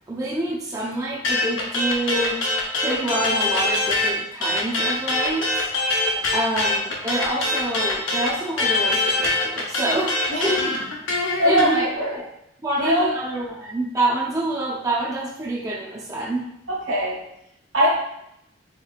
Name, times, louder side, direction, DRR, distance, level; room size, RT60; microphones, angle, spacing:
voice 1, 0.1-2.4 2.8-5.7 6.3-10.7 11.4-11.9 12.1-12.2 12.6-16.4, right 1 dB, 15° right, -5 dB, 0.4 m, -27 dB
sound 1, 1.2-4.1 4.4-11.7, left 2 dB, 80° left, 0.7 m, -23 dB
voice 2, 11.4-12.2 12.8-13.1 16.7-17.2 17.7-17.9, equal, 75° right, -3 dB, 1.1 m, -21 dB
3.6 x 2.8 x 2.4 m, 0.78 s
head